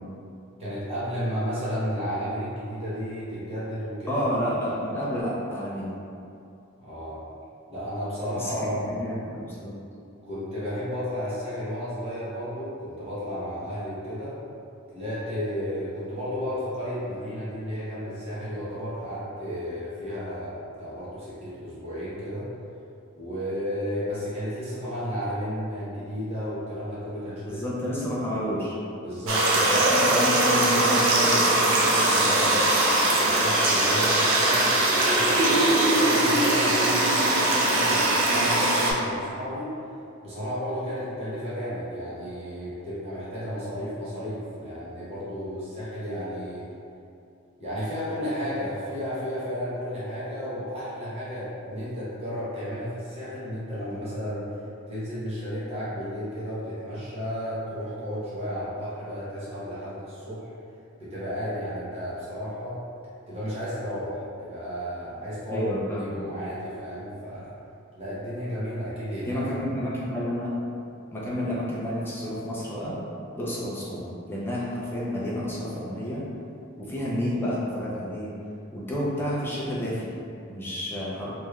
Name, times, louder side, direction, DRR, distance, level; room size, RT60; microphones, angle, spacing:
voice 1, 0.6-4.2 6.8-7.2 7.7-9.0 10.3-14.3 14.9-22.5 23.2-27.6 29.0-30.0 32.9-39.7 40.2-46.6 47.6-54.4 54.9-60.5 61.0-62.8 63.3-65.6 65.9-67.5 68.0-69.4, equal, 30° right, -11 dB, 1.0 m, -33 dB
voice 2, 4.1-5.9 8.3-9.8 27.5-28.7 29.9-32.8 65.5-66.2 69.3-70.5 71.1-73.0 73.4-76.2 76.8-78.3 78.7-80.1 80.5-81.3, equal, 10° left, -7 dB, 0.5 m, -30 dB
sound 1, 29.3-38.9, right 1 dB, 70° right, 0.5 m, -21 dB
3.2 x 3.1 x 2.3 m, 2.5 s
head